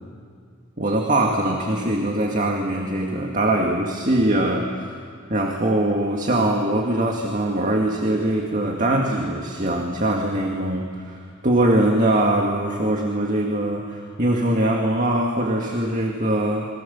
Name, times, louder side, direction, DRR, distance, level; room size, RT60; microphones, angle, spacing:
voice 1, 0.8-4.9 5.3-16.7, right 1 dB, 40° right, 1 dB, 1.9 m, -22 dB
29.0 x 23.5 x 7.0 m, 2.2 s
head